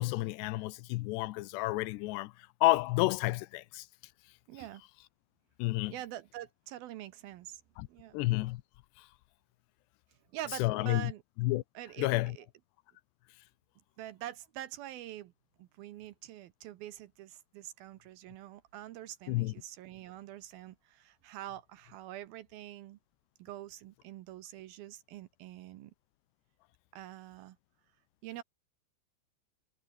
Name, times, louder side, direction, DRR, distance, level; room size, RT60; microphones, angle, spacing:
voice 1, 0.0-2.3 2.6-3.9 5.6-6.0 7.8-7.9 8.1-8.6 9.0-9.1 10.6-11.1 11.4-11.6 12.0-12.4 19.3-19.5, left 19 dB, 90° left, 2.8 m, -30 dB
voice 2, 4.5-4.8 5.9-7.6 7.9-8.2 10.3-11.2 11.8-12.5 14.0-15.3 15.6-23.0 23.4-25.9 26.9-27.6 28.2-28.4, right 13 dB, 75° right, 2.4 m, -45 dB
omnidirectional pair, 5.0 m